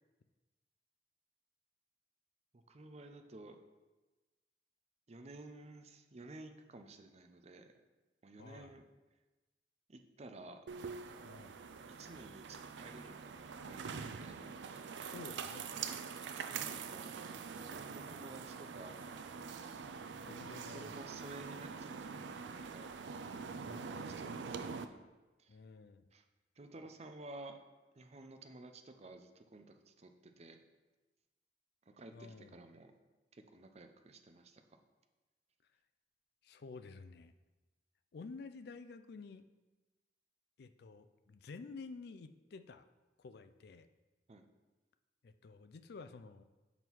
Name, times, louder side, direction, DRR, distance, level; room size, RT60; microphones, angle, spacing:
voice 1, 2.5-3.6 5.1-7.7 8.2-8.9 9.9-10.7 11.3-11.4 11.8-14.5 16.3-19.0 20.2-22.9 23.6-25.0 25.4-25.6 26.1-26.3 26.6-27.6 27.9-30.6 31.9-32.9 33.3-34.8 44.3-44.5, right 2 dB, 35° right, 7 dB, 0.6 m, -53 dB
voice 2, 8.4-8.8 11.2-11.6 15.1-15.8 20.2-21.0 23.6-24.2 25.5-26.1 32.1-32.5 36.4-37.3 38.1-39.5 40.6-42.8 43.2-43.9 45.2-46.4, left 4 dB, 60° left, 10 dB, 0.4 m, -51 dB
sound 1, 10.7-24.8, right 5 dB, 85° right, 0.4 m, -45 dB
6.1 x 5.4 x 4.6 m, 1.2 s
head